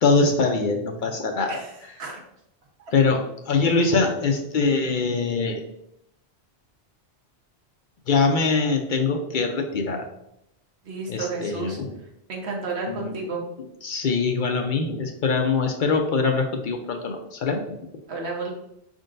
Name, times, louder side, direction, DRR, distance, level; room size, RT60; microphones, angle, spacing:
voice 1, 0.0-1.9 2.9-5.6 8.1-10.1 11.1-11.9 12.9-13.2 13.8-17.7, left 4 dB, 60° left, 4 dB, 0.6 m, -23 dB
voice 2, 10.8-11.8 12.3-13.4 18.1-18.5, right 3 dB, 80° right, -1 dB, 1.3 m, -31 dB
5.3 x 3.7 x 2.5 m, 0.82 s
omnidirectional pair, 1.1 m